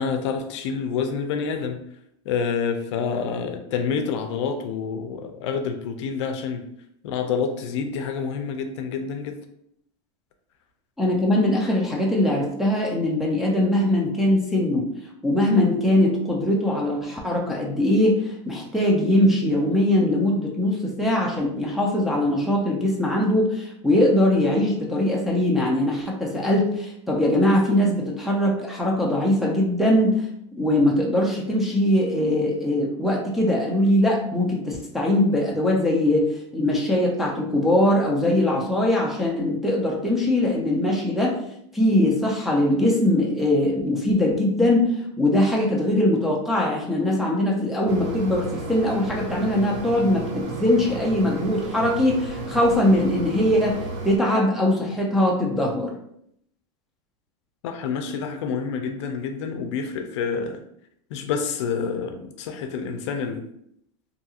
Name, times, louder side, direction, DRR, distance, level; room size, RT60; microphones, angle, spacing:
voice 1, 0.0-1.8 2.3-6.6 7.0-9.4 57.6-60.6 61.1-63.4, left 6 dB, 65° left, 6 dB, 0.4 m, -28 dB
voice 2, 11.0-14.9 15.2-30.3 30.5-41.3 41.7-53.8 54.0-55.9, left 1 dB, ahead, -4 dB, 0.3 m, -21 dB
Mechanisms, 47.9-54.2, right 3 dB, 75° right, 0.6 m, -33 dB
2.7 x 2.7 x 2.3 m, 0.72 s
supercardioid pair, 150°, 16 cm